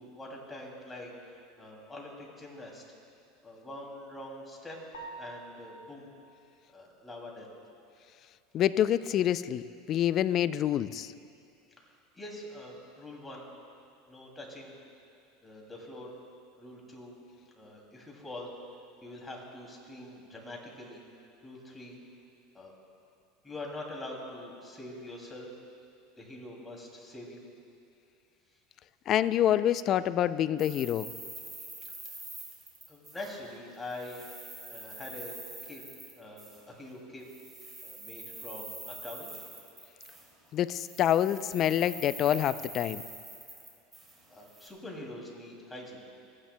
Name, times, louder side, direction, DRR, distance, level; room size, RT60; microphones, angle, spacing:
voice 1, 0.0-2.8 3.4-4.8 5.2-6.1 6.7-7.5 11.8-11.9 12.1-13.5 14.1-14.8 15.4-16.1 16.6-17.2 17.5-18.5 19.0-21.0 21.4-22.0 22.5-22.7 23.4-25.5 26.2-27.4 32.9-34.3 34.6-35.4 35.6-35.8 36.1-37.2 37.8-39.3 44.3-46.0, left 1 dB, 15° left, -1 dB, 2.6 m, -44 dB
sound 1, 4.9-6.0, right 3 dB, 85° left, 1.4 m, -45 dB
voice 2, 8.5-11.1 29.1-31.1 40.5-43.0, left 11 dB, 45° left, 15 dB, 0.4 m, -27 dB
sound 2, 30.6-33.6 33.8-36.6 37.2-40.5 40.8-44.7, right 2 dB, 15° right, 2.7 m, -45 dB
27.5 x 9.6 x 2.2 m, 2.5 s
hypercardioid pair, 100°, 0 cm